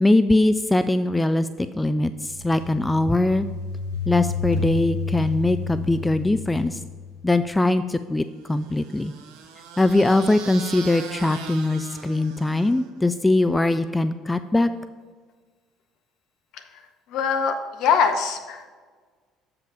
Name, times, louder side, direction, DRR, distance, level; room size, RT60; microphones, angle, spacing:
voice 1, 0.0-3.5 4.1-6.8 7.2-9.1 9.8-14.7, left 2 dB, 10° left, 11 dB, 0.3 m, -21 dB
sound 1, 1.9-7.5, left 4 dB, 80° right, 1.9 m, -31 dB
sound 2, 8.5-13.0, right 6 dB, 60° right, 0.7 m, -40 dB
voice 2, 17.1-18.7, left 6 dB, 55° left, 6 dB, 0.8 m, -22 dB
7.5 x 5.2 x 5.6 m, 1.5 s
figure-of-eight pair, 55°, 0 cm